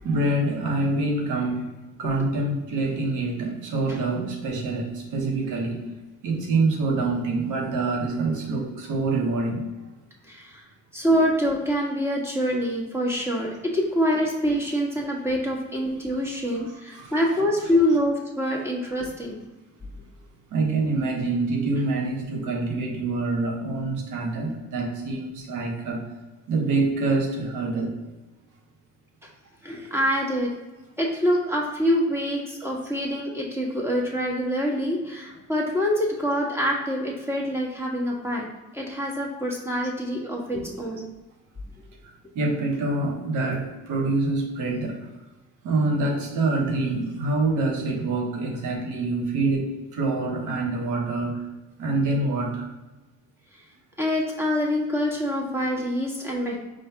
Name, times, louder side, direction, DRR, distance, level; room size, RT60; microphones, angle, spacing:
voice 1, 0.0-1.7 2.0-5.9 6.2-9.7 16.6-17.2 20.2-26.1 26.5-28.0 42.0-45.1 45.6-51.5 51.8-52.7, right 2 dB, 85° right, 1 dB, 1.1 m, -26 dB
voice 2, 10.3-10.6 10.9-19.4 29.6-30.5 31.0-38.5 38.7-41.1 54.0-56.6, equal, 10° right, -2 dB, 1.4 m, -25 dB
5.0 x 3.8 x 2.8 m, 1.1 s
cardioid pair, 90°, 30 cm